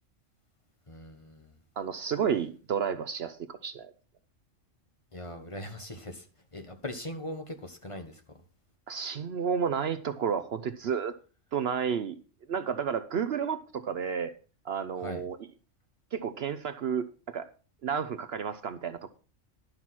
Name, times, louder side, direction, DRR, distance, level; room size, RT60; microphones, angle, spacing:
voice 1, 0.9-1.6 5.1-6.3 6.5-8.4 15.0-15.3, left 1 dB, 25° left, 1.3 m, -40 dB
voice 2, 1.8-3.9 8.9-11.1 11.5-12.2 12.5-14.3 14.6-15.4 16.1-17.5 17.8-19.1, right 7 dB, 60° right, 0.8 m, -31 dB
11.5 x 5.9 x 5.9 m
omnidirectional pair, 1.3 m